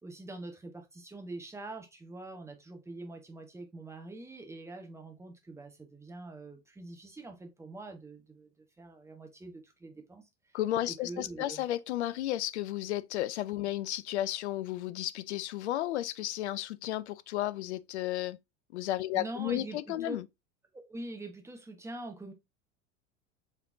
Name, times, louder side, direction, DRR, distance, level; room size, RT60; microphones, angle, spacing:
voice 1, 0.0-10.6 10.9-11.7 19.1-20.2 20.7-22.3, right 2 dB, 5° right, 0.9 m, -44 dB
voice 2, 10.5-18.4 18.7-20.3, left 14 dB, 60° left, 0.5 m, -33 dB
6.3 x 3.3 x 2.5 m
figure-of-eight pair, 75°, 38 cm